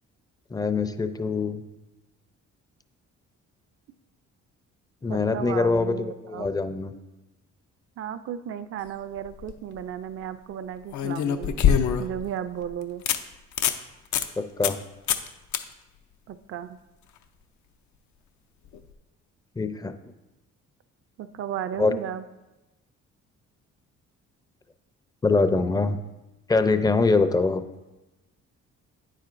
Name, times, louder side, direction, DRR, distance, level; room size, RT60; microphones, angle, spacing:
voice 1, 0.5-1.6 5.0-6.9 14.4-14.8 19.6-19.9 21.8-21.9 25.2-26.0 26.5-27.6, left 3 dB, 15° left, 10 dB, 0.4 m, -23 dB
voice 2, 5.1-6.5 8.0-11.5 12.0-13.0 16.3-16.8 21.2-22.2, right 9 dB, 50° right, 11 dB, 0.4 m, -34 dB
sound 1, 9.2-9.5 10.9-12.2 12.6-12.7 13.1-13.2 13.5-13.8 14.1-14.3 14.6-14.8 15.1-15.3 15.5-15.6 18.7-18.8, left 8 dB, 70° left, 0.6 m, -23 dB
9.2 x 7.4 x 2.5 m, 1.0 s
cardioid pair, 90°, 30 cm